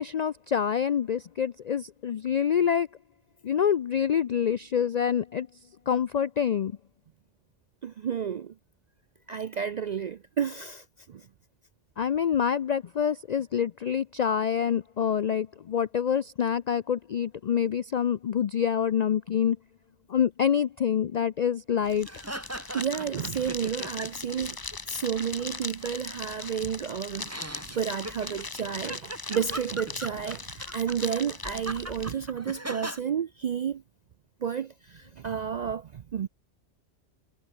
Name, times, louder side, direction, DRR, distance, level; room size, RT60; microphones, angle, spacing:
voice 1, 0.0-2.9 3.4-5.5 5.9-6.7 12.0-19.6 20.1-22.1, left 8 dB, 65° left, 0.4 m, -26 dB
voice 2, 7.8-8.5 9.3-11.3 22.7-24.6 24.9-33.8 34.4-36.3, right 7 dB, 60° right, 0.4 m, -31 dB
sound 1, 21.8-32.1, left 3 dB, 20° left, 0.7 m, -40 dB
sound 2, 22.1-24.4 24.7-26.7 27.2-33.0, right 1 dB, 10° right, 2.8 m, -40 dB
omnidirectional pair, 1.3 m